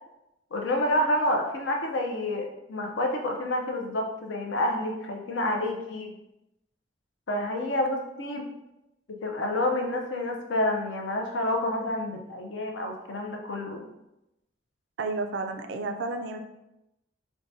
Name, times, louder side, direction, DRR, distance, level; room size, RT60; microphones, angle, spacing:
voice 1, 0.5-6.2 7.3-8.5 9.1-13.9, left 1 dB, 65° left, 2 dB, 0.5 m, -28 dB
voice 2, 15.0-16.4, right 3 dB, 60° right, 7 dB, 0.3 m, -31 dB
4.5 x 2.1 x 2.6 m, 0.90 s
head